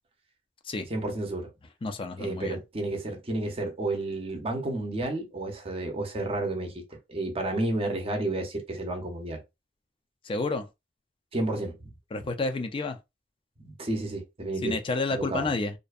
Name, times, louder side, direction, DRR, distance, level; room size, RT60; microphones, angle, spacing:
voice 1, 0.9-1.5 2.2-6.8 7.1-9.4 11.3-11.8 13.6-14.8 15.1-15.6, right 2 dB, 30° right, 0.6 m, -31 dB
voice 2, 1.8-2.6 10.3-10.7 12.1-13.0 14.6-15.7, left 3 dB, 30° left, 0.4 m, -30 dB
2.6 x 2.1 x 2.3 m
head